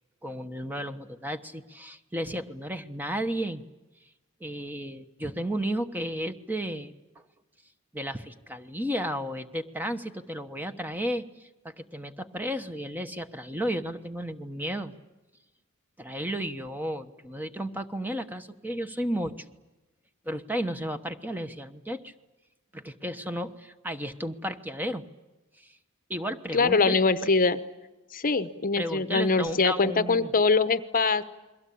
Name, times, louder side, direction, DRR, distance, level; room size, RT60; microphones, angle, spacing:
voice 1, 0.2-3.6 4.4-6.9 7.9-14.9 16.0-19.3 20.2-22.1 22.7-25.0 25.6-25.7 26.1-27.0 27.2-27.3 28.8-30.3, equal, 10° right, 8 dB, 1.2 m, -33 dB
voice 2, 26.5-27.6 28.1-31.2, left 4 dB, 40° left, 12 dB, 1.0 m, -23 dB
29.5 x 22.5 x 8.6 m, 1.0 s
head